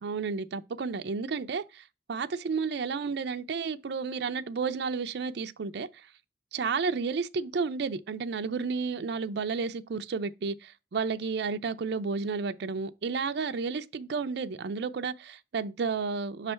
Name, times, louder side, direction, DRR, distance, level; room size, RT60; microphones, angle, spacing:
voice 1, 0.0-1.8 2.1-5.9 6.5-16.5, right 5 dB, 65° right, 0.4 m, -32 dB
6.1 x 3.3 x 5.6 m
head